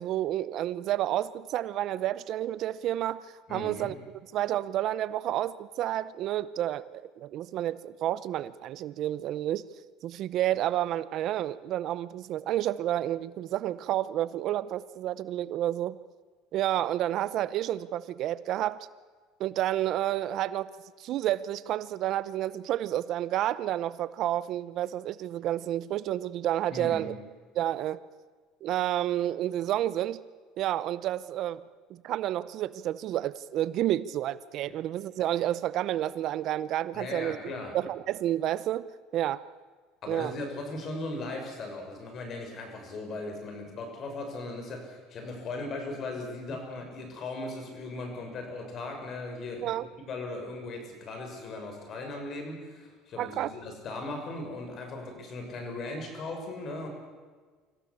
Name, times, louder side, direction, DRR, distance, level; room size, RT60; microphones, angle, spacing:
voice 1, 0.0-3.9 4.3-9.6 10.0-16.0 16.5-18.9 19.4-20.7 21.0-27.1 27.5-28.0 28.6-30.2 30.6-31.6 31.9-37.4 37.7-39.4 40.1-40.4 49.6-49.9 53.2-53.5, right 12 dB, 55° right, 17 dB, 0.7 m, -30 dB
voice 2, 3.5-3.9 26.7-27.1 34.7-34.8 36.9-37.7 40.0-49.7 50.1-56.9, left 2 dB, 40° left, 4 dB, 6.7 m, -38 dB
25.0 x 15.5 x 8.7 m, 1.5 s
cardioid pair, 125°, 0 cm